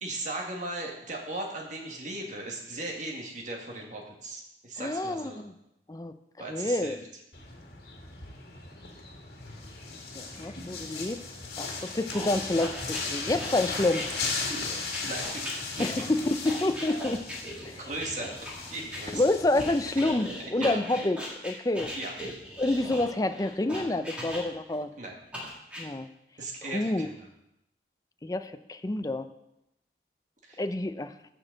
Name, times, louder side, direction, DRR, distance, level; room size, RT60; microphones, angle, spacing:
voice 1, 0.0-5.4 6.4-7.0 15.0-15.5 15.8-15.9 17.9-18.3 18.7-19.2 20.4-20.8 21.9-22.1 25.0-25.2 26.4-27.3 30.4-30.6, right 2 dB, 45° right, 0 dB, 1.8 m, -37 dB
voice 2, 4.8-5.5 5.9-6.1 6.5-7.0 10.1-11.2 11.6-14.1 15.8-17.2 17.6-17.8 19.1-21.9 22.6-24.9 25.8-26.1 26.7-27.1 28.2-29.3 30.6-31.1, left 2 dB, 20° left, 9 dB, 0.4 m, -28 dB
sound 1, 7.3-20.0, left 4 dB, 60° left, 2.0 m, -37 dB
sound 2, 12.1-19.0 19.6-24.7 25.3-25.8, equal, 5° right, 2.1 m, -39 dB
14.0 x 6.3 x 3.9 m, 0.85 s
head